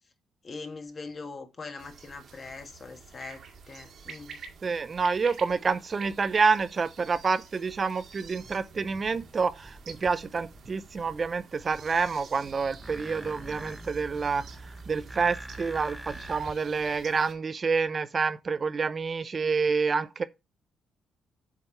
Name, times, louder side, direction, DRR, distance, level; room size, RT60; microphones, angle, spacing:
voice 1, 0.4-4.4, left 4 dB, 40° left, 1.5 m, -42 dB
sound 1, 1.8-17.3, right 5 dB, 60° right, 1.8 m, -49 dB
voice 2, 4.6-14.4 14.9-20.2, right 5 dB, 40° right, 0.4 m, -28 dB
sound 2, 8.1-16.5, right 1 dB, 5° right, 0.8 m, -45 dB
8.1 x 3.7 x 4.3 m
cardioid pair, 90°, 0 cm